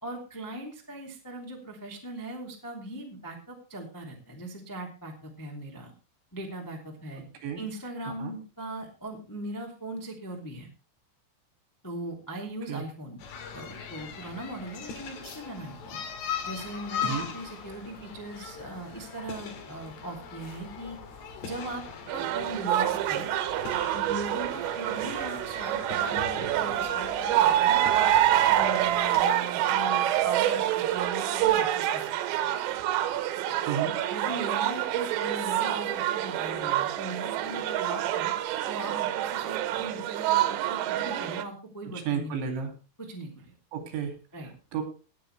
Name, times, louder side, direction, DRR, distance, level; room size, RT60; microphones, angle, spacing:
voice 1, 0.0-5.9 6.3-7.2 7.5-10.7 11.8-13.2 13.5-16.0 16.4-21.0 21.4-21.8 22.1-23.3 23.9-28.1 28.5-32.4 34.1-38.3 38.7-42.6 43.0-43.5 44.3-44.5, right 2 dB, 10° left, 0 dB, 1.1 m, -39 dB
voice 2, 7.2-7.6 8.2-8.3 12.7-12.8 17.0-17.3 33.7-33.9 41.9-42.7 43.7-44.2 44.7-44.8, right 7 dB, 70° right, 5 dB, 4.8 m, -32 dB
sound 1, 13.2-29.3, left 7 dB, 60° left, 3.9 m, -40 dB
sound 2, 22.1-41.4, right 12 dB, 85° right, 3.6 m, -27 dB
18.5 x 8.6 x 3.3 m, 0.32 s
omnidirectional pair, 5.7 m